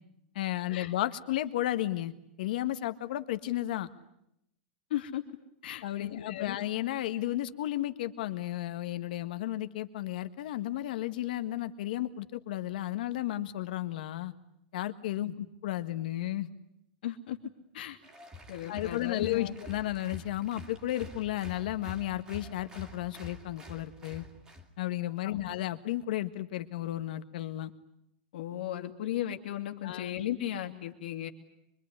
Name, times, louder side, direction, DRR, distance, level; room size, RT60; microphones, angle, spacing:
voice 1, 0.3-2.1 2.4-3.9 5.8-14.3 14.7-16.5 18.7-24.3 24.8-27.7 29.8-30.1, left 14 dB, 60° left, 9 dB, 1.6 m, -33 dB
voice 2, 4.9-5.2 5.6-6.6 15.2-15.3 17.0-17.4 17.7-18.0 18.5-19.6 25.2-25.4 28.3-31.3, left 12 dB, 80° left, 4 dB, 2.5 m, -36 dB
Applause, 18.0-24.7, left 2 dB, 15° right, 2.3 m, -47 dB
24.5 x 24.0 x 9.7 m, 0.79 s
supercardioid pair, 175°, 5 cm